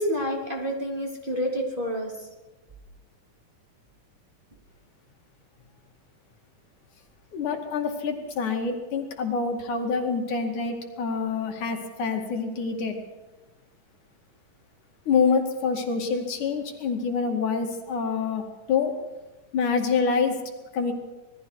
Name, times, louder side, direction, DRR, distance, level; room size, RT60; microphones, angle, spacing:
voice 1, 0.0-2.1, equal, 15° right, -2 dB, 3.1 m, -28 dB
voice 2, 7.3-13.0 15.1-18.9 19.5-20.4 20.7-20.9, left 5 dB, 70° left, 3 dB, 3.7 m, -26 dB
27.0 x 20.0 x 4.8 m, 1.2 s
omnidirectional pair, 3.6 m